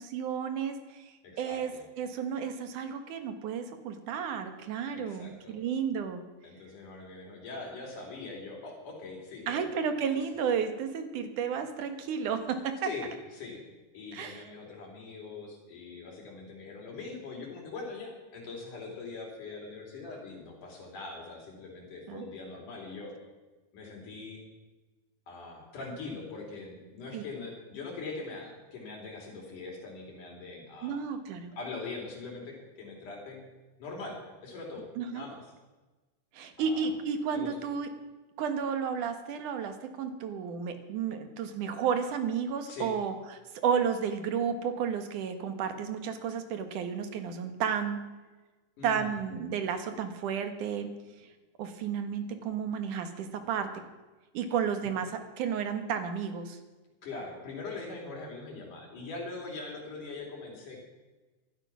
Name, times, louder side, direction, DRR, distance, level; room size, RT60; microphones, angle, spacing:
voice 1, 0.0-1.7 2.0-6.2 9.5-12.9 14.1-14.4 22.1-22.2 27.1-27.2 30.8-31.5 35.0-35.3 36.3-37.9 38.4-48.0 48.8-50.9 51.6-53.7 54.3-56.6, right 7 dB, 80° right, 8 dB, 3.0 m, -32 dB
voice 2, 1.2-1.8 4.9-5.6 6.4-9.7 12.8-13.6 13.9-23.2 23.7-24.4 25.3-31.0 31.5-33.4 33.8-35.5 36.6-36.9 37.3-37.5 42.7-42.9 48.8-49.2 57.0-60.8, left 3 dB, 85° left, 0 dB, 5.4 m, -42 dB
19.0 x 12.0 x 6.2 m, 1.2 s
omnidirectional pair, 3.5 m